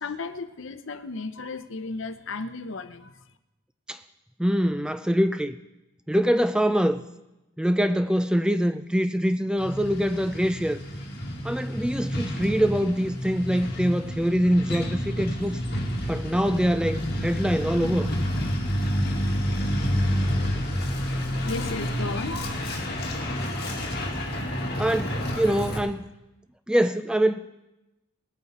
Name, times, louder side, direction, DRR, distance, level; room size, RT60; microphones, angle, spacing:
voice 1, 0.0-3.2 21.4-22.5, left 3 dB, 65° left, 10 dB, 0.7 m, -34 dB
voice 2, 4.4-5.6 6.1-7.0 7.6-10.8 11.4-15.6 16.1-18.1 24.8-26.0 26.7-27.5, equal, 5° right, 10 dB, 0.3 m, -24 dB
Truck, 9.6-25.8, equal, 50° left, 2.0 m, -29 dB
19.5 x 8.9 x 4.2 m, 0.97 s
head